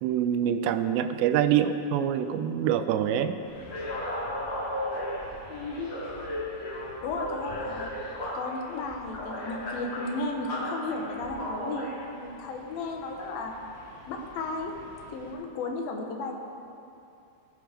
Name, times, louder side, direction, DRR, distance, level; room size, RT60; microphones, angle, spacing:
voice 1, 0.0-3.3, right 9 dB, 80° right, 10 dB, 2.9 m, -25 dB
sound 1, 3.4-15.3, left 1 dB, 35° left, 4.6 m, -36 dB
voice 2, 5.5-6.2 7.0-7.9 8.3-13.6 14.1-14.7 15.1-16.3, left 3 dB, 65° left, 2 dB, 2.7 m, -34 dB
20.5 x 11.5 x 5.1 m, 2.7 s
omnidirectional pair, 5.1 m